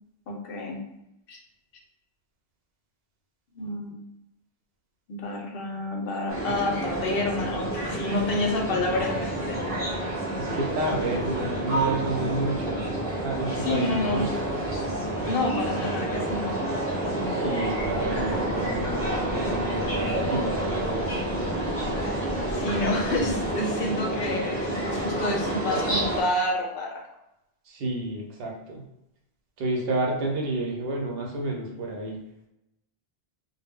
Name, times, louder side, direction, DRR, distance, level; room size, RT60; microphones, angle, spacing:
voice 1, 0.3-0.8 1.3-1.4 3.5-4.0 5.1-9.6 13.6-14.3 15.2-16.6 22.5-27.0, left 2 dB, 70° left, 1 dB, 0.8 m, -29 dB
sound 1, 6.3-26.2, right 1 dB, 15° left, 0.7 m, -29 dB
voice 2, 10.4-12.9 13.2-14.4 17.2-21.2 27.6-28.9 29.6-32.2, right 2 dB, 75° right, 0 dB, 0.8 m, -30 dB
sound 2, 17.8-23.5, equal, 20° right, 0.5 m, -38 dB
2.1 x 2.0 x 3.4 m, 0.85 s
omnidirectional pair, 1.0 m